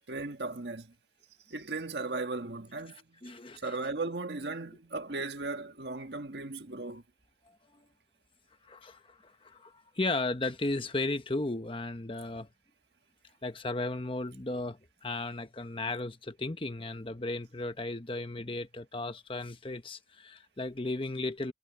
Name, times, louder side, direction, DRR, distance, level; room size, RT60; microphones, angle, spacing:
voice 1, 0.1-0.9 1.5-3.2 3.6-7.0, right 3 dB, 65° right, 1.6 m, -36 dB
voice 2, 3.2-3.7 8.7-12.5 13.4-21.5, left 2 dB, 30° left, 1.1 m, -35 dB
head